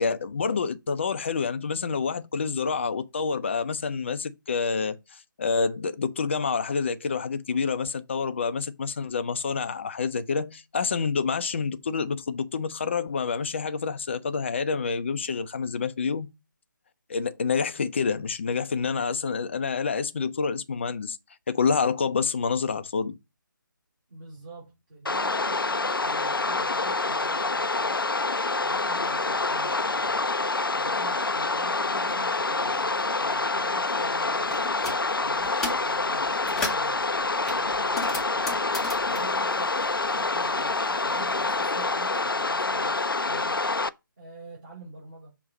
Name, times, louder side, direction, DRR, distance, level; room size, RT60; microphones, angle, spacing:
voice 1, 0.0-5.0 5.4-16.3 17.1-21.2 21.5-23.2, left 5 dB, 35° left, 0.5 m, -28 dB
voice 2, 24.1-28.0 28.6-30.3 30.7-34.7 35.2-38.7 39.1-39.7 40.1-43.6 44.2-45.3, right 3 dB, 30° right, 3.3 m, -46 dB
sound 1, 25.1-43.9, left 3 dB, 80° left, 0.5 m, -27 dB
sound 2, 34.5-35.0 35.4-35.9 36.3-36.9 37.5-40.4 40.7-41.8, left 2 dB, 5° left, 0.9 m, -35 dB
6.3 x 3.0 x 5.0 m
figure-of-eight pair, 150°, 11 cm